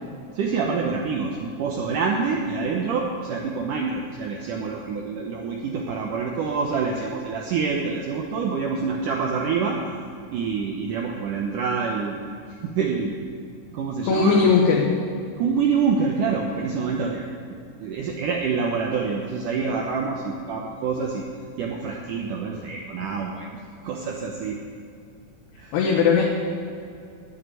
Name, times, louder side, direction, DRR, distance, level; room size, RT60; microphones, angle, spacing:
voice 1, 0.3-9.8 10.3-12.2 12.6-13.1 13.7-14.6 15.4-21.2 21.6-24.6 25.6-25.8 26.1-26.2, right 5 dB, 75° right, 0 dB, 1.9 m, -26 dB
voice 2, 14.1-14.9 25.7-26.2, left 6 dB, 75° left, -3 dB, 3.1 m, -18 dB
9.4 x 8.6 x 9.2 m, 2.5 s
omnidirectional pair, 4.8 m